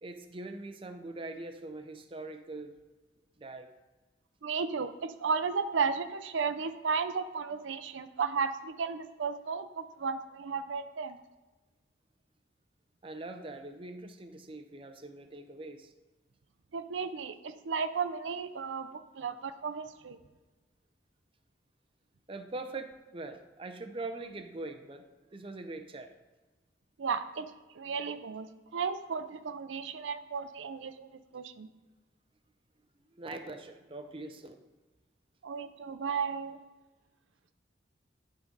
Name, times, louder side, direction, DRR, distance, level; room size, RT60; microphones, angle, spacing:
voice 1, 0.0-2.7 3.4-3.7 13.0-15.9 22.3-26.1 33.1-34.6, right 2 dB, 30° right, 7 dB, 0.6 m, -42 dB
voice 2, 4.4-11.2 16.7-20.2 27.0-31.7 35.4-36.6, right 5 dB, 85° right, 11 dB, 0.5 m, -34 dB
11.5 x 3.8 x 5.2 m, 1.2 s
head